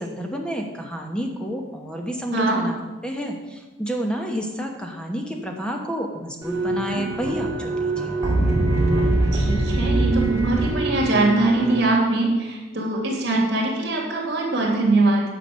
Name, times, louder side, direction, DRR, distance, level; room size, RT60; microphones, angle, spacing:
voice 1, 0.0-2.8 3.0-8.2, equal, 5° left, 2 dB, 1.0 m, -29 dB
sound 1, 6.4-11.8, right 2 dB, 15° right, 2.2 m, -23 dB
voice 2, 9.3-15.2, right 2 dB, 55° right, -1 dB, 2.7 m, -22 dB
9.9 x 6.0 x 6.5 m, 1.2 s
head